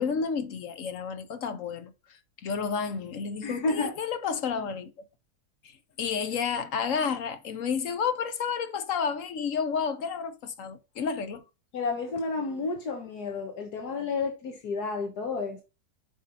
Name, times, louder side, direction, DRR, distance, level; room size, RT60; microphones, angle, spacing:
voice 1, 0.0-1.9 2.4-4.9 6.0-11.4, left 6 dB, 60° left, 1.2 m, -30 dB
voice 2, 3.4-3.9 11.7-15.6, left 4 dB, 80° left, 1.8 m, -31 dB
7.4 x 5.6 x 4.0 m
omnidirectional pair, 1.7 m